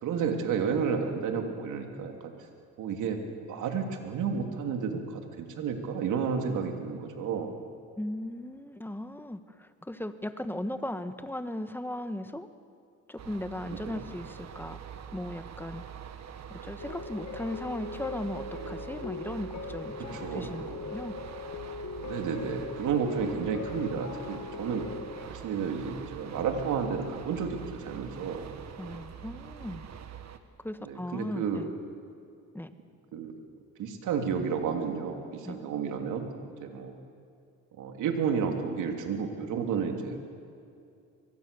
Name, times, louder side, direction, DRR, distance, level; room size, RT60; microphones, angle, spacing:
voice 1, 0.0-2.3 2.8-7.5 13.7-14.0 20.2-20.5 22.0-24.8 25.3-28.4 30.8-31.6 33.1-33.3 33.8-36.3 36.6-36.9 37.7-40.2, right 6 dB, 85° right, 4 dB, 3.0 m, -31 dB
voice 2, 8.0-12.5 13.1-14.8 15.1-15.8 16.5-21.1 28.8-29.9 30.6-31.7 32.5-32.7 35.4-35.6, left 1 dB, 5° left, 10 dB, 1.4 m, -37 dB
sound 1, 13.2-30.4, right 8 dB, 60° right, 1.7 m, -44 dB
sound 2, 16.8-25.3, left 4 dB, 65° left, 2.0 m, -40 dB
24.0 x 23.5 x 7.0 m, 2.4 s
cardioid pair, 90°, 30 cm